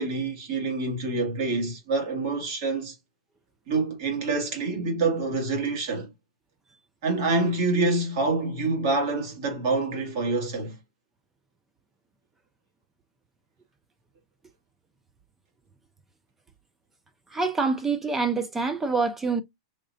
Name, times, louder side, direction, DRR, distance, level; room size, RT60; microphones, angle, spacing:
voice 1, 0.0-2.9 3.7-6.1 7.0-10.7, right 3 dB, 45° right, 2.1 m, -26 dB
voice 2, 17.3-19.4, right 4 dB, 10° right, 0.4 m, -26 dB
3.8 x 3.2 x 2.6 m
supercardioid pair, 170°, 3 cm